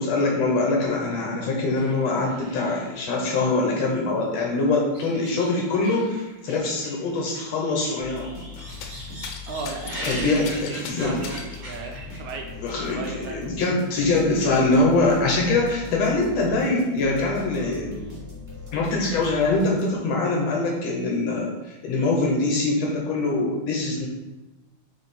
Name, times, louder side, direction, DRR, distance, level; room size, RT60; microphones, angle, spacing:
voice 1, 0.0-8.3 10.0-11.3 12.5-18.0 18.7-24.1, left 2 dB, 70° left, -1 dB, 1.8 m, -23 dB
sound 1, 1.7-4.2 4.5-12.5 12.8-13.2 13.8-14.3 14.6-14.7 15.6-16.0 16.3-17.5, right 1 dB, 45° right, 1.7 m, -41 dB
sound 2, 8.0-20.2, left 4 dB, 10° right, 1.0 m, -40 dB
sound 3, 8.6-9.0 9.2-11.6 12.7-12.8 13.2-14.3 15.1-15.2, left 6 dB, 85° left, 2.3 m, -39 dB
voice 2, 9.5-12.4 12.9-13.4, right 4 dB, 80° right, 3 dB, 2.0 m, -34 dB
5.6 x 4.4 x 4.2 m, 1.1 s
omnidirectional pair, 3.6 m